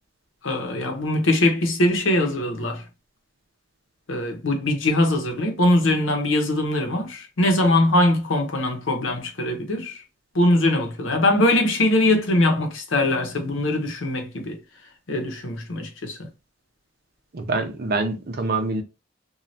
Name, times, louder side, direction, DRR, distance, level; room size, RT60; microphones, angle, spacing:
voice 1, 0.4-2.8 4.1-10.0 10.3-14.6 15.1-16.3, left 1 dB, 85° left, 0.8 m, -22 dB
voice 2, 17.3-18.8, right 3 dB, 55° right, 0.6 m, -25 dB
3.1 x 2.3 x 2.6 m
head